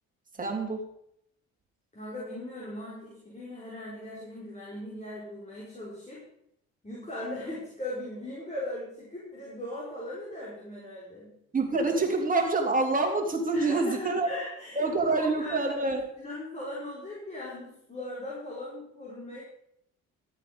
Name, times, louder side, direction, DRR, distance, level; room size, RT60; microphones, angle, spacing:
voice 1, 0.3-0.9 11.5-14.3 14.7-16.1, right 3 dB, 25° right, 1 dB, 3.3 m, -26 dB
voice 2, 1.9-6.2 6.8-11.3 13.5-15.7 16.2-19.4, left 1 dB, 20° left, -6 dB, 4.9 m, -39 dB
13.5 x 8.6 x 5.2 m, 0.74 s
supercardioid pair, 70°, 33 cm